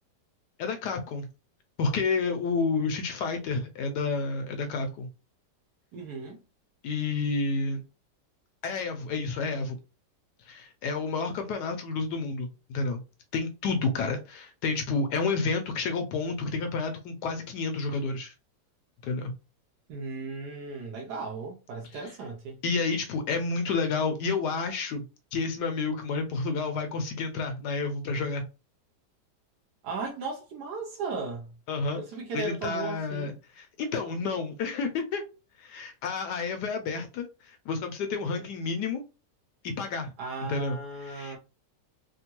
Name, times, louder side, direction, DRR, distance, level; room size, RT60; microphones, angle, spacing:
voice 1, 0.6-1.3 1.8-5.1 6.8-7.8 8.6-9.8 10.4-13.0 13.3-18.3 19.0-19.3 21.9-22.1 22.6-25.0 25.3-28.5 31.7-32.0 32.3-35.2 35.6-39.0 39.6-40.1 40.4-41.4, left 4 dB, 75° left, 1.1 m, -30 dB
voice 2, 5.9-6.4 19.9-22.6 29.8-31.5 32.0-33.4 38.2-38.4 40.2-41.4, right 4 dB, 70° right, 1.2 m, -36 dB
3.5 x 2.2 x 2.9 m
omnidirectional pair, 1.9 m